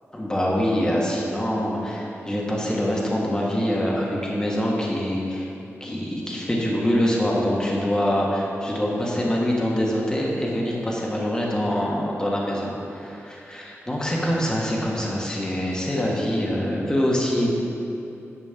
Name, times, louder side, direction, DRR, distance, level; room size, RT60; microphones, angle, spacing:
voice 1, 0.1-5.5 5.8-17.5, equal, 15° left, -3 dB, 1.5 m, -24 dB
10.5 x 4.5 x 7.3 m, 2.8 s
wide cardioid pair, 140°, 5 cm